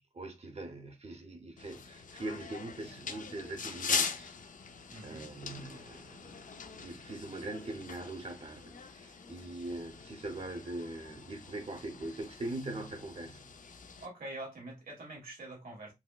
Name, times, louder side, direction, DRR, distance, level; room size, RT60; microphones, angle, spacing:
voice 1, 0.1-4.4 4.7-6.4 6.8-13.4, right 2 dB, 45° right, 0.8 m, -42 dB
sound 1, 1.6-14.1, left 5 dB, 65° left, 0.5 m, -41 dB
voice 2, 4.9-5.3 14.0-15.9, right 2 dB, 90° right, 1.5 m, -45 dB
4.1 x 2.1 x 2.3 m
cardioid pair, 60°, 15 cm